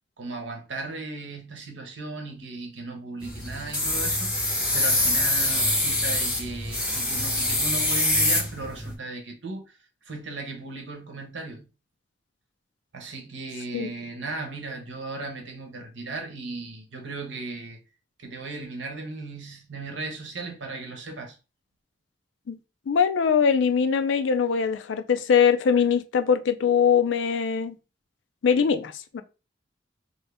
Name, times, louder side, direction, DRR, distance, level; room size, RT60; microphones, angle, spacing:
voice 1, 0.2-9.7 10.0-11.7 12.9-17.8 18.2-21.4, right 3 dB, 80° right, 1.0 m, -36 dB
sound 1, 3.2-8.9, left 1 dB, 5° right, 1.4 m, -25 dB
voice 2, 22.9-27.8 28.4-29.2, left 6 dB, 85° left, 0.4 m, -22 dB
2.7 x 2.6 x 3.3 m
head